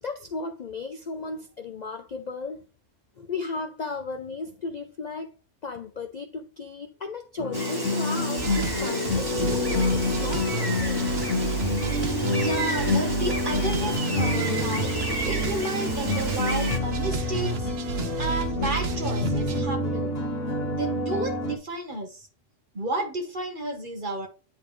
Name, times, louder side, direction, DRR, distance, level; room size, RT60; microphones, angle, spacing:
voice 1, 0.0-2.6 3.2-5.3 5.6-11.1, left 4 dB, 50° left, 0.5 m, -35 dB
sound 1, 7.4-21.6, left 2 dB, 70° left, 1.7 m, -28 dB
Gull seagull, 7.5-16.8, equal, 20° right, 1.3 m, -32 dB
sound 2, 8.4-19.6, right 7 dB, 55° right, 1.1 m, -32 dB
voice 2, 12.3-14.9 15.2-17.7 18.2-20.2 20.7-22.3 22.7-24.3, right 2 dB, 40° right, 1.4 m, -32 dB
9.7 x 3.7 x 3.1 m
omnidirectional pair, 1.3 m